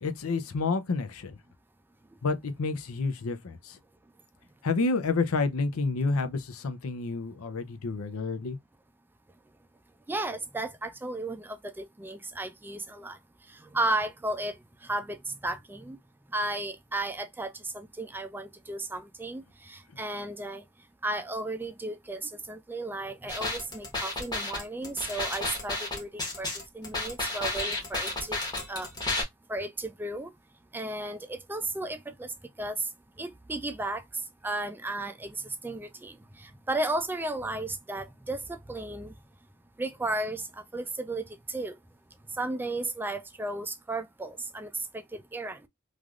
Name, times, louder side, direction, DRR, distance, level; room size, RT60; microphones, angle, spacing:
voice 1, 0.0-1.4 2.2-3.8 4.6-8.6, left 3 dB, 85° left, 0.6 m, -29 dB
voice 2, 10.1-13.2 13.5-14.6 14.8-16.0 16.3-20.6 21.0-26.5 26.7-28.4 28.7-28.9 29.5-30.3 30.7-32.3 32.6-32.9 33.2-34.0 34.4-39.1 39.8-41.7 42.4-45.7, right 2 dB, 10° right, 0.3 m, -34 dB
sound 1, 23.3-29.2, left 2 dB, 20° left, 1.1 m, -32 dB
3.2 x 2.5 x 2.4 m
head